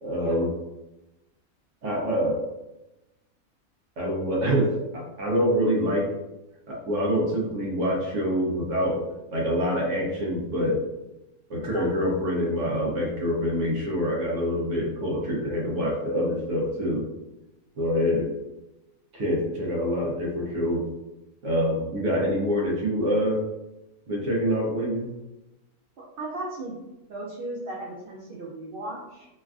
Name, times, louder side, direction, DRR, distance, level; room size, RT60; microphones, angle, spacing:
voice 1, 0.0-0.5 1.8-2.4 4.0-6.1 6.7-9.0 9.3-10.8 11.5-17.0 17.8-18.3 19.1-20.8 21.4-23.4 24.1-25.1, equal, 60° right, -2 dB, 1.0 m, -25 dB
voice 2, 26.2-26.8 27.1-29.3, right 2 dB, 85° right, -4 dB, 0.5 m, -36 dB
3.2 x 2.3 x 2.3 m, 0.96 s
omnidirectional pair, 1.6 m